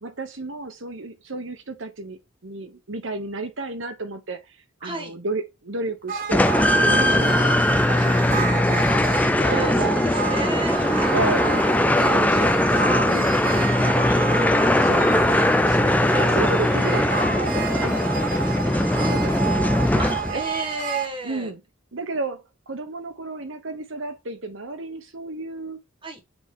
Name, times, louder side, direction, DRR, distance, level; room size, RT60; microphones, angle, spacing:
voice 1, 0.0-8.9 9.4-10.0 11.1-13.3 13.6-14.1 14.6-18.3 18.6-20.0 20.3-20.4 21.2-21.6 21.9-25.8, right 3 dB, 70° right, 1.1 m, -33 dB
voice 2, 4.8-5.1 8.9-9.1 9.4-11.2 18.9-19.2 20.0-21.5 26.0-26.2, right 2 dB, 25° right, 1.3 m, -33 dB
sound 1, 6.1-21.1, right 7 dB, 40° right, 0.6 m, -29 dB
sound 2, 6.3-20.6, left 1 dB, 5° left, 0.3 m, -20 dB
7.1 x 4.1 x 3.7 m
head